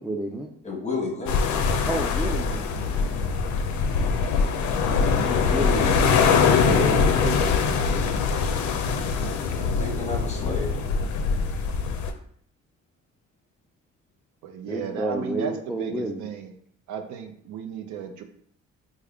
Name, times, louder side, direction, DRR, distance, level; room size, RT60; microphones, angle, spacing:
voice 1, 0.0-0.5 1.9-3.1 5.3-6.0 14.7-16.3, right 1 dB, 5° right, -1 dB, 0.3 m, -30 dB
voice 2, 0.6-1.6 9.6-10.8, left 3 dB, 25° left, 0 dB, 1.0 m, -31 dB
sound 1, 1.3-12.1, left 5 dB, 75° left, 0.5 m, -23 dB
voice 3, 6.6-7.6 14.4-16.5 16.9-18.2, right 7 dB, 75° right, 6 dB, 0.5 m, -34 dB
3.4 x 2.1 x 3.4 m, 0.65 s
cardioid pair, 90°, 30 cm